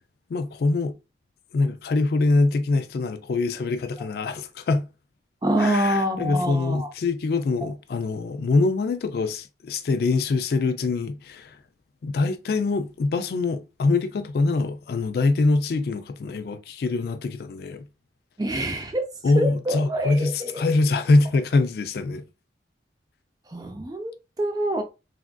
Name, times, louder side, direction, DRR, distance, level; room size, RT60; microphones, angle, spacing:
voice 1, 0.3-0.9 1.5-4.9 5.6-11.6 12.0-17.9 19.2-22.2, left 3 dB, 55° left, 0.3 m, -24 dB
voice 2, 5.4-6.9 18.4-19.1 19.3-20.6 23.5-24.8, right 1 dB, 20° right, 0.4 m, -26 dB
3.3 x 2.4 x 2.2 m
head